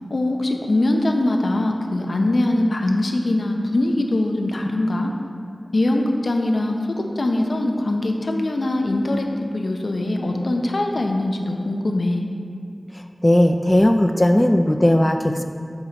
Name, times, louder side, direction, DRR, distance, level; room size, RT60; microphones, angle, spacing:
voice 1, 0.1-5.1 5.7-9.3 9.5-12.2, left 1 dB, 75° left, 2 dB, 0.6 m, -22 dB
voice 2, 12.9-15.5, left 1 dB, 20° left, 6 dB, 0.3 m, -17 dB
8.8 x 3.0 x 5.1 m, 2.5 s
wide cardioid pair, 50°, 0 cm